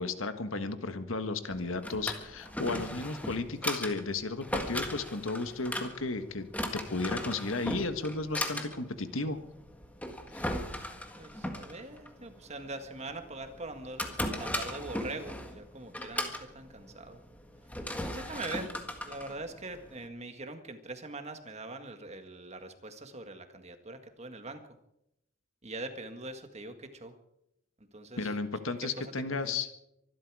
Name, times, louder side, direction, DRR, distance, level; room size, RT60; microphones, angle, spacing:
voice 1, 0.0-6.5 6.7-9.4 10.3-10.5 28.2-29.7, left 3 dB, 75° left, 9 dB, 1.5 m, -34 dB
Drawer open or close, 1.5-20.1, left 1 dB, 5° left, 1.7 m, -38 dB
voice 2, 11.2-17.2 18.1-18.7 19.0-24.6 25.6-27.1 27.8-28.3 28.7-29.6, right 2 dB, 30° right, 7 dB, 1.7 m, -43 dB
24.5 x 12.5 x 4.8 m, 0.81 s
head